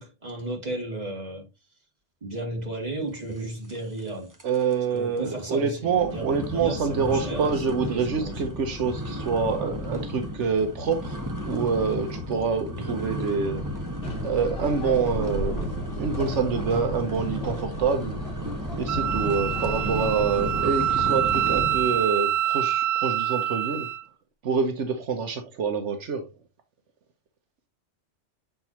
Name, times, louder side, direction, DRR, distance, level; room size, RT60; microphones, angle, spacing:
voice 1, 0.0-1.5 2.2-4.3 4.9-6.3 6.5-8.4 12.8-13.0 19.8-20.0, right 2 dB, 35° right, 2.4 m, -34 dB
sound 1, 3.7-4.1 4.3-4.7 5.2-5.3 5.8-22.0, left 1 dB, 15° right, 1.2 m, -33 dB
voice 2, 4.4-11.2 11.4-13.6 14.2-15.7 15.9-18.2 18.8-23.9 24.4-26.3, right 5 dB, 80° right, 1.2 m, -26 dB
sound 2, 14.0-20.6, right 1 dB, 55° left, 2.0 m, -35 dB
Wind instrument woodwind instrument, 18.9-24.0, right 10 dB, 55° right, 0.6 m, -26 dB
7.7 x 4.4 x 2.9 m
omnidirectional pair, 1.2 m